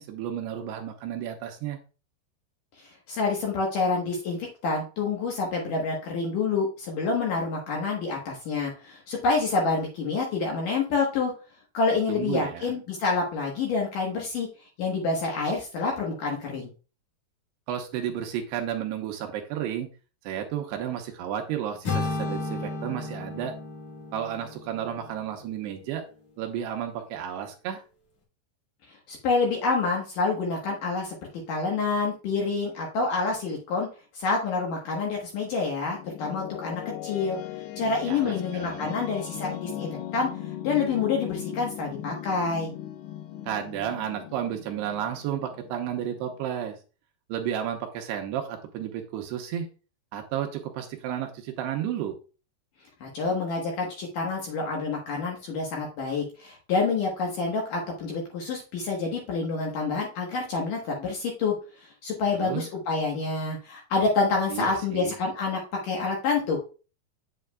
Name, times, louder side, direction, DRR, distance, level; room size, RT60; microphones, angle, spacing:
voice 1, 0.0-1.8 12.1-12.7 17.7-19.9 20.2-23.5 24.1-26.0 26.4-27.8 38.1-38.9 43.5-46.8 47.3-49.7 50.1-52.2 62.4-62.6 64.5-65.1, right 10 dB, 80° right, 4 dB, 2.8 m, -32 dB
voice 2, 2.8-11.3 11.7-14.5 14.8-16.7 29.1-31.1 31.5-33.9 34.1-37.4 37.8-40.3 40.6-42.7 53.0-61.5 61.8-66.6, left 4 dB, 65° left, -1 dB, 2.3 m, -27 dB
sound 1, 21.8-25.9, left 3 dB, 45° left, 2.5 m, -34 dB
sound 2, 35.5-46.5, left 12 dB, 85° left, 3.1 m, -38 dB
8.7 x 7.5 x 2.3 m, 0.35 s
omnidirectional pair, 5.2 m